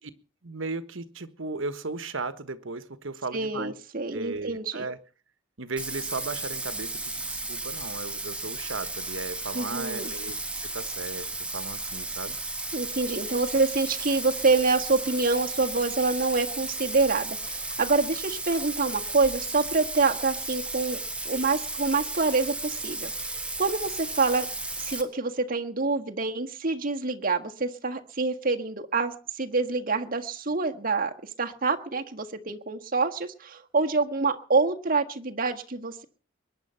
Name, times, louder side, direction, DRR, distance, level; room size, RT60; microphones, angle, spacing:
voice 1, 0.4-3.7 4.1-5.0 5.6-12.4, right 3 dB, 70° right, 1.4 m, -36 dB
voice 2, 3.3-4.8 9.5-10.1 12.7-21.0 21.2-23.3 23.6-24.5 24.8-31.1 31.4-36.0, right 3 dB, 45° right, 1.6 m, -26 dB
Bathtub (filling or washing), 5.8-25.0, right 2 dB, 5° right, 1.7 m, -34 dB
21.5 x 9.9 x 5.7 m
head